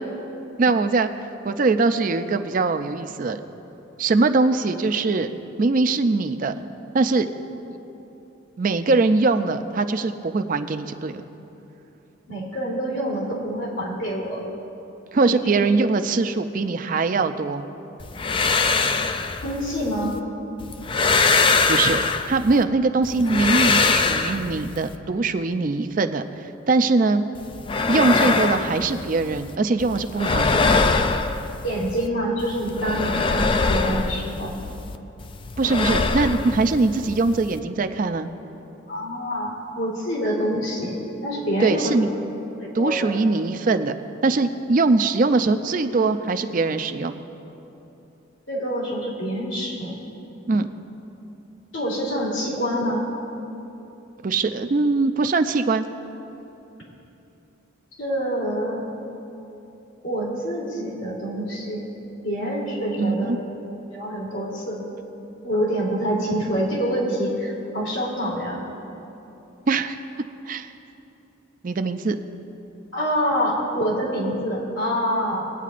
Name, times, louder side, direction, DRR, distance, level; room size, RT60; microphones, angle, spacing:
voice 1, 0.6-1.1 1.4-3.4 4.0-5.3 5.6-6.5 6.9-7.3 8.6-11.2 15.1-17.6 21.7-26.2 26.7-27.2 27.9-30.8 35.6-38.3 41.6-42.1 42.7-43.9 44.2-47.2 50.5-50.7 54.2-55.9 63.0-63.4 69.7-70.0 70.5-70.7 71.6-72.2, right 3 dB, 40° right, 8 dB, 0.4 m, -22 dB
voice 2, 12.3-14.4 15.3-15.5 19.4-20.2 31.6-34.6 38.9-41.9 42.6-43.1 48.5-50.0 51.7-53.0 58.0-58.9 60.0-61.9 62.2-63.3 63.9-64.8 65.4-68.6 72.9-75.4, equal, 75° left, -5 dB, 2.8 m, -26 dB
sound 1, 18.0-20.2 20.6-22.6 23.0-25.0 27.4-29.6 29.8-32.1 32.4-35.0 35.2-37.6, left 4 dB, 25° left, 0.3 m, -23 dB
21.5 x 9.2 x 2.5 m, 3.0 s
head